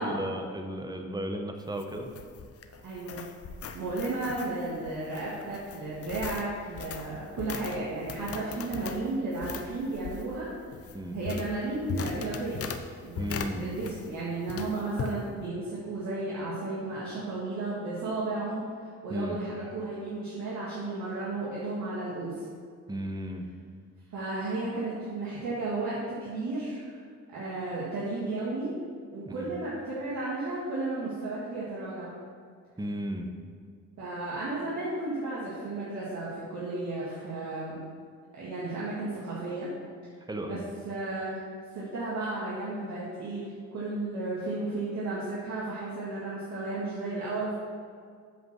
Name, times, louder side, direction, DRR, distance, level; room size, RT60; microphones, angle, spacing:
voice 1, 0.0-2.1 10.9-11.2 13.2-13.7 19.1-19.4 22.9-23.5 29.3-29.5 32.8-33.3 40.3-40.6, right 1 dB, 15° right, 4 dB, 1.0 m, -34 dB
sound 1, 1.6-14.2 14.5-15.2, left 6 dB, 50° left, 0.7 m, -39 dB
voice 2, 2.8-3.2 3.7-10.5 11.1-12.6 13.0-18.7 19.0-22.5 24.1-27.0 27.3-28.7 29.1-32.1 34.0-37.8 38.4-39.7 40.4-40.6 40.8-41.4 41.7-47.5, right 2 dB, 70° right, -8 dB, 2.0 m, -33 dB
8.0 x 5.1 x 6.1 m, 2.1 s
cardioid pair, 90°, 30 cm